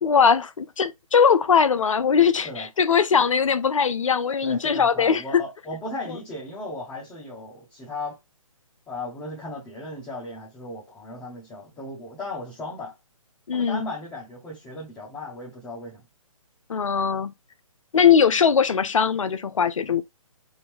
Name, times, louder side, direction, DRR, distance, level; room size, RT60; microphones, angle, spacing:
voice 1, 0.0-5.4 13.5-13.9 16.7-17.3 17.9-20.0, left 6 dB, 65° left, 0.6 m, -20 dB
voice 2, 4.4-8.2 8.9-12.9 13.5-16.0, left 2 dB, 10° left, 1.0 m, -36 dB
3.7 x 2.2 x 3.4 m
figure-of-eight pair, 140°, 18 cm